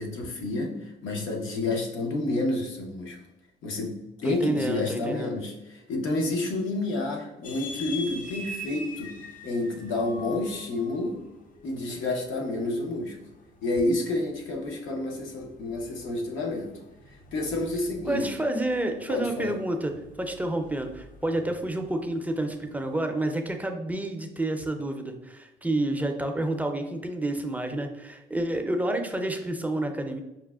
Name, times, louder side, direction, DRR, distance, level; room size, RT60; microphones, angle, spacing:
voice 1, 0.0-3.2 3.6-9.1 9.4-11.2 11.6-13.2 13.6-16.7 17.1-18.3 19.1-19.5, left 2 dB, 80° left, 0 dB, 0.8 m, -29 dB
voice 2, 4.2-5.4 18.1-19.9 20.2-30.2, right 1 dB, 10° right, 4 dB, 0.4 m, -29 dB
sound 1, 7.4-23.1, left 1 dB, 45° left, 0.6 m, -45 dB
5.5 x 2.1 x 2.3 m, 0.98 s
cardioid pair, 90°, 20 cm